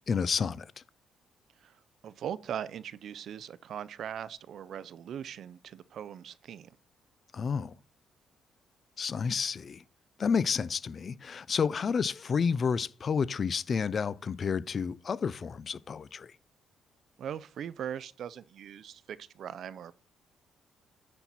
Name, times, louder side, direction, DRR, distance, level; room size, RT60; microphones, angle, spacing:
voice 1, 0.1-0.7 7.3-7.7 9.0-9.8 10.2-16.3, left 6 dB, 45° left, 0.4 m, -30 dB
voice 2, 1.6-6.8 17.2-19.9, right 9 dB, 65° right, 0.4 m, -40 dB
9.8 x 4.4 x 4.1 m
cardioid pair, 90°, 0 cm